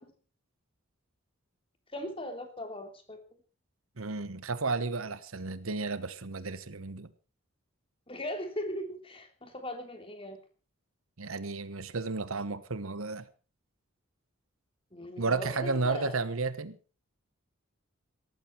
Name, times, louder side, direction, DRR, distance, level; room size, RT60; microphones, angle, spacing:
voice 1, 1.9-3.2 8.1-10.4 14.9-16.2, equal, 25° left, 5 dB, 3.2 m, -38 dB
voice 2, 4.0-7.1 11.2-13.3 15.2-16.8, right 3 dB, 80° right, 14 dB, 1.2 m, -33 dB
18.0 x 14.0 x 4.6 m, 0.37 s
head